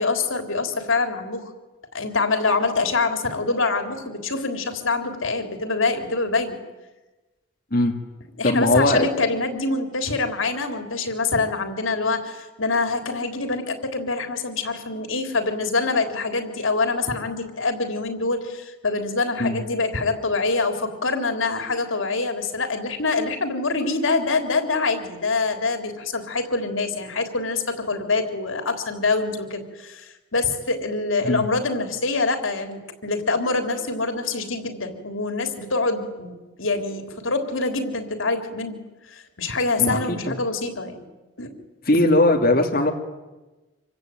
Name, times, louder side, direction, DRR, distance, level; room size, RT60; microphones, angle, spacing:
voice 1, 0.0-1.5 1.9-6.6 8.4-38.8 39.1-41.1 41.4-41.5, left 3 dB, 85° left, 6 dB, 3.6 m, -25 dB
voice 2, 8.4-9.1 19.4-19.6 31.2-31.4 39.8-40.4 41.9-42.9, left 1 dB, 45° left, 1 dB, 2.5 m, -19 dB
26.5 x 24.0 x 9.2 m, 1.1 s
head